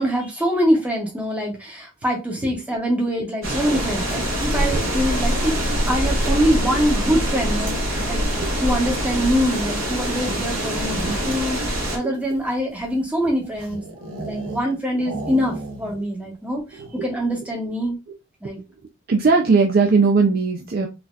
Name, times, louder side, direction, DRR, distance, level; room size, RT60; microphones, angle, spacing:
voice 1, 0.0-5.6 5.9-18.0 18.4-18.6, equal, 5° right, -1 dB, 0.9 m, -24 dB
sound 1, 3.4-12.0, equal, 70° right, 1.7 m, -24 dB
sound 2, 10.6-11.5 12.1-14.7 15.0-16.1 16.3-16.4 16.7-17.1, right 2 dB, 90° right, 1.0 m, -35 dB
voice 2, 19.1-20.9, right 4 dB, 45° right, 2 dB, 0.4 m, -18 dB
4.0 x 2.7 x 2.4 m, 0.26 s
head